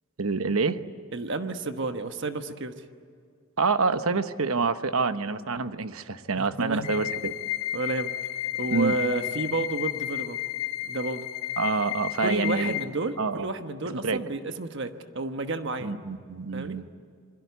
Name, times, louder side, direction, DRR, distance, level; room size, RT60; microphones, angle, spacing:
voice 1, 0.2-0.8 3.6-7.3 8.7-8.9 11.6-12.7 13.2-13.5 13.8-14.2 15.8-16.9, right 4 dB, 75° right, 11 dB, 1.0 m, -27 dB
voice 2, 1.1-2.7 6.4-6.9 7.7-8.1 8.6-10.4 10.8-11.3 12.2-15.9 16.5-16.8, right 2 dB, 55° right, 8 dB, 1.2 m, -31 dB
sound 1, 6.8-12.8, left 14 dB, 75° left, 2.9 m, -32 dB
27.0 x 22.5 x 8.3 m, 2.2 s
head